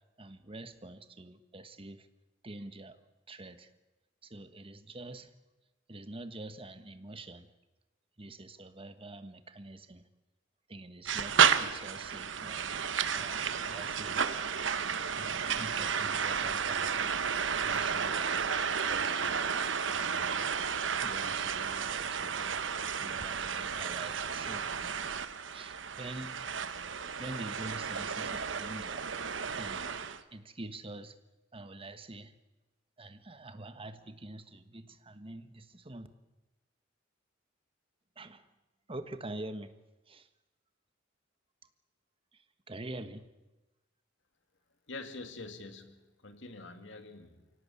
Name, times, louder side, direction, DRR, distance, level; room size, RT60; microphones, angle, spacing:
voice 1, 0.2-2.1 2.4-3.0 3.3-3.7 4.2-5.3 5.9-7.5 8.2-10.0 10.7-12.7 13.1-14.2 15.2-17.3 17.6-18.5 18.9-19.5 19.9-20.5 21.0-22.6 23.0-24.7 25.5-26.6 27.2-29.1 29.6-31.2 31.5-32.3 33.0-36.1 38.2-38.5 38.9-39.7 40.1-40.3 42.3-42.4 42.7-43.3, right 2 dB, 30° right, 10 dB, 1.4 m, -46 dB
sound 1, 11.1-30.2, right 6 dB, 70° right, 1.1 m, -32 dB
voice 2, 44.9-47.5, left 3 dB, 70° left, 7 dB, 2.5 m, -46 dB
24.5 x 17.5 x 8.6 m, 1.1 s
head